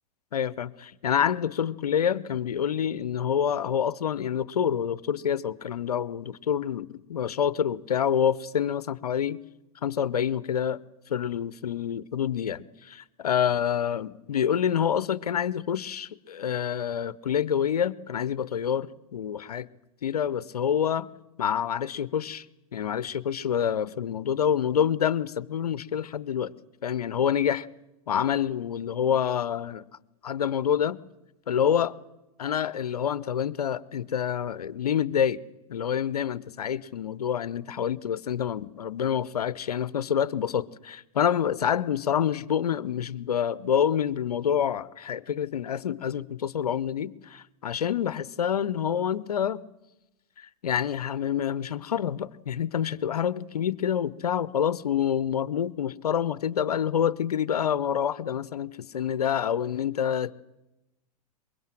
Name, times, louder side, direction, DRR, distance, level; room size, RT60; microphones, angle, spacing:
voice 1, 0.3-9.4 9.8-10.8 11.1-19.7 20.0-21.1 21.4-22.5 22.7-26.5 26.8-27.7 28.1-29.8 30.2-31.0 31.5-31.9 32.4-35.4 35.7-49.6 50.4-60.3, left 8 dB, 85° left, 0.8 m, -27 dB
23.5 x 21.5 x 7.6 m
hypercardioid pair, 100°, 19 cm